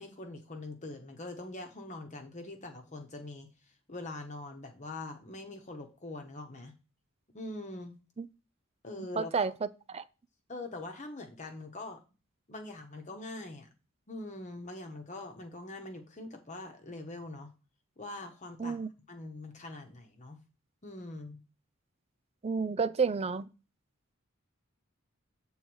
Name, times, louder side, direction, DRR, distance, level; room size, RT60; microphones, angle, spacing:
voice 1, 0.0-3.5 3.9-6.7 7.3-7.9 8.8-9.5 10.5-12.0 12.5-13.7 14.1-17.5 18.0-18.8 19.1-20.4 20.8-21.4, left 2 dB, 35° left, 1.1 m, -43 dB
voice 2, 9.2-9.5 9.9-10.0 18.6-18.9 22.4-23.5, right 5 dB, 30° right, 0.4 m, -30 dB
7.5 x 3.9 x 6.2 m
head